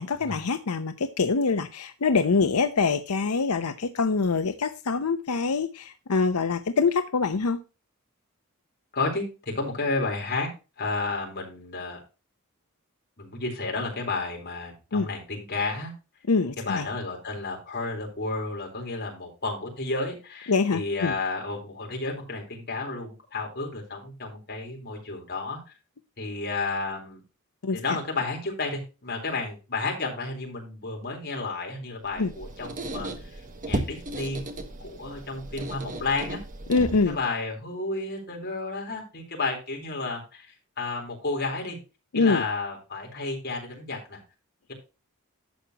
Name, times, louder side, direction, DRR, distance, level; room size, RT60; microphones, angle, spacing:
voice 1, 0.0-7.6 14.9-15.1 16.3-16.8 20.5-21.1 27.6-27.8 32.2-32.3 36.7-37.2 42.1-42.4, left 4 dB, 90° left, 0.7 m, -24 dB
voice 2, 8.9-9.2 9.5-10.5 10.8-12.0 13.2-15.9 16.6-25.6 26.2-27.2 27.7-34.5 34.8-36.4 37.0-41.8 42.1-44.2, left 3 dB, 50° left, 3.9 m, -32 dB
Squeak, 32.1-37.3, right 1 dB, 40° right, 1.4 m, -35 dB
11.5 x 7.4 x 2.9 m
head